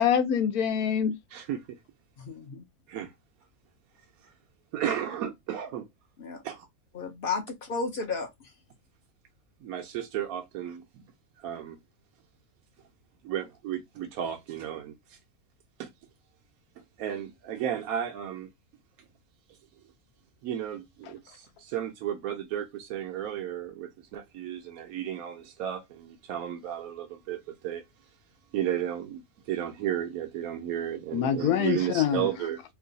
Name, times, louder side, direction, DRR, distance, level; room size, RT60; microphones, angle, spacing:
voice 1, 0.0-1.1 31.1-32.3, left 9 dB, 90° left, 1.1 m, -25 dB
voice 2, 1.3-1.6 2.9-3.1 4.2-4.3 4.7-5.9 6.4-6.7 9.6-11.0 11.4-11.8 13.2-15.2 15.8-15.9 17.0-18.5 20.4-27.8 28.5-32.6, right 10 dB, 80° right, 1.1 m, -33 dB
voice 3, 2.2-2.6 6.2-6.4 6.9-8.3, left 4 dB, 55° left, 0.7 m, -33 dB
3.1 x 2.3 x 3.8 m
omnidirectional pair, 1.5 m